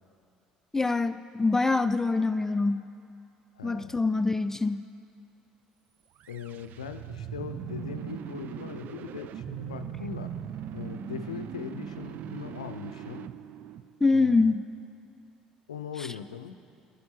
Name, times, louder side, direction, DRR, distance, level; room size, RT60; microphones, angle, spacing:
voice 1, 0.7-2.8 3.6-4.8 14.0-14.6, left 3 dB, 10° left, 10 dB, 0.5 m, -25 dB
voice 2, 3.5-4.1 6.3-10.4 10.7-13.3 14.1-14.5 15.7-16.6, left 8 dB, 85° left, 9 dB, 0.5 m, -40 dB
sound 1, 6.2-14.3, right 10 dB, 55° right, 0.5 m, -39 dB
25.5 x 11.5 x 2.9 m, 2.5 s
hypercardioid pair, 60°, 4 cm